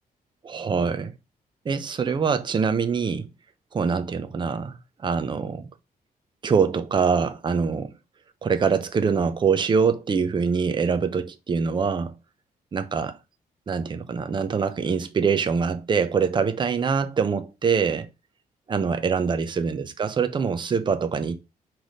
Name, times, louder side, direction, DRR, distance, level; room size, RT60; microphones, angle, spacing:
voice 1, 0.4-1.1 1.6-3.3 3.7-5.7 6.4-7.9 8.4-12.1 12.7-13.2 13.7-18.1 18.7-21.4, right 5 dB, 30° right, 0.7 m, -24 dB
6.0 x 3.2 x 5.2 m
wide cardioid pair, 165°, 16 cm